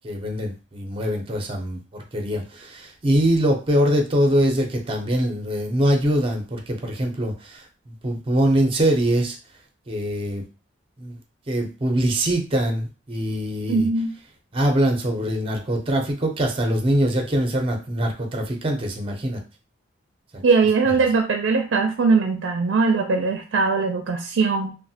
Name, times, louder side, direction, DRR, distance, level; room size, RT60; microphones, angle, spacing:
voice 1, 0.0-9.4 9.9-10.4 11.0-11.2 11.5-13.9 14.5-19.4, equal, 30° right, 3 dB, 0.5 m, -23 dB
voice 2, 13.7-14.1 20.4-24.7, right 4 dB, 85° right, 4 dB, 0.4 m, -20 dB
3.0 x 2.1 x 2.7 m, 0.32 s
head